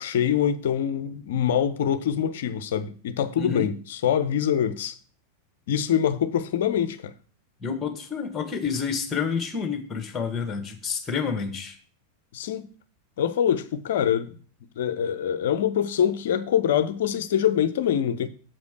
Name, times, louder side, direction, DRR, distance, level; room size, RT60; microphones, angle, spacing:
voice 1, 0.0-5.0 5.7-7.1 12.3-12.7 13.2-14.4 14.8-18.3, left 9 dB, 55° left, 0.7 m, -24 dB
voice 2, 3.4-3.7 7.6-11.7, left 6 dB, 20° left, 1.6 m, -29 dB
7.3 x 5.1 x 6.4 m
figure-of-eight pair, 90°, 0 cm